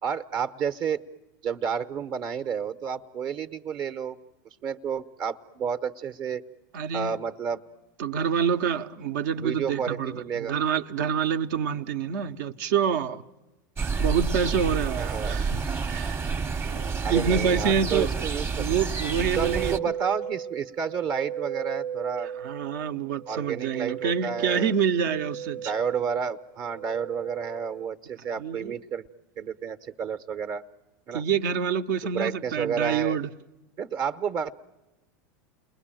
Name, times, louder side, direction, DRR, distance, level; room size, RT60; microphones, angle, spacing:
voice 1, 0.0-1.0 1.4-4.2 4.6-6.4 6.9-7.6 9.4-10.5 15.0-15.4 17.0-18.7 19.4-22.3 23.3-24.7 25.6-29.1 29.4-30.6 31.1-31.2 32.0-33.2 33.8-34.5, right 7 dB, 45° right, 0.9 m, -31 dB
voice 2, 6.7-7.2 8.0-13.2 14.0-16.3 16.7-18.1 18.6-19.9 22.4-25.7 28.4-28.7 31.1-33.3, right 7 dB, 65° right, 0.9 m, -27 dB
sound 1, 13.8-19.8, right 5 dB, 20° right, 0.9 m, -29 dB
sound 2, 19.4-27.9, right 9 dB, 85° right, 1.2 m, -36 dB
29.5 x 20.5 x 9.0 m
hypercardioid pair, 100°, 10 cm